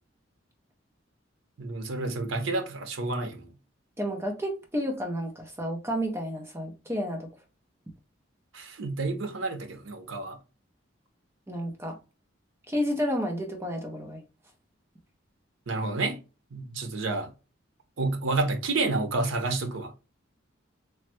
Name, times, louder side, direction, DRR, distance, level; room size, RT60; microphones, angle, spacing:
voice 1, 1.6-3.5 8.5-10.4 15.7-16.2 16.5-17.3 18.0-19.9, right 3 dB, 85° right, 0.6 m, -29 dB
voice 2, 4.0-7.3 11.5-12.0 12.7-14.2, equal, 15° right, 0.5 m, -31 dB
3.1 x 2.1 x 2.9 m
head